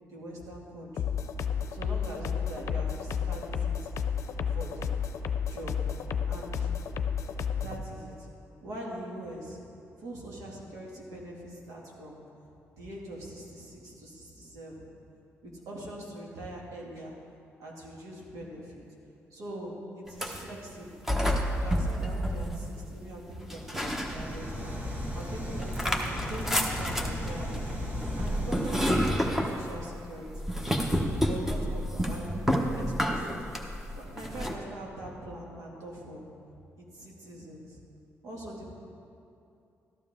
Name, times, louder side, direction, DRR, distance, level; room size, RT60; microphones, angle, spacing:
voice 1, 0.1-1.1 1.7-3.9 4.5-5.0 5.5-5.8 6.3-6.7 7.5-8.3 8.6-9.6 10.0-12.2 12.7-14.9 15.4-17.1 17.6-18.8 19.3-21.0 21.6-24.7 25.1-26.0 26.3-27.7 28.2-30.7 31.2-33.4 33.9-36.2 36.8-37.8 38.2-38.7, right 1 dB, 85° right, -3 dB, 2.5 m, -42 dB
sound 1, 1.0-7.8, left 7 dB, 70° left, 0.6 m, -31 dB
sound 2, 20.1-20.5 21.1-23.0 23.5-24.6 25.0-34.6, equal, 5° right, 1.1 m, -30 dB
sound 3, 23.6-29.3, equal, 35° right, 2.0 m, -36 dB
13.0 x 12.0 x 3.7 m, 2.6 s
cardioid pair, 110°, 5 cm